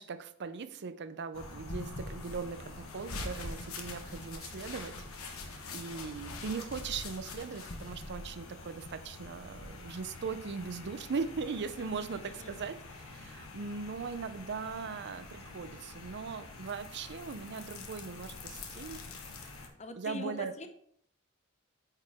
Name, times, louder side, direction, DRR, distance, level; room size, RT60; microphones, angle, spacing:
voice 1, 0.0-19.5 19.9-20.5, right 5 dB, 55° right, 11 dB, 0.5 m, -40 dB
sound 1, 1.3-19.7, left 2 dB, 75° left, 1.2 m, -45 dB
voice 2, 11.8-12.5 19.8-20.7, left 2 dB, 35° left, 7 dB, 0.8 m, -43 dB
8.9 x 4.9 x 3.5 m, 0.66 s
head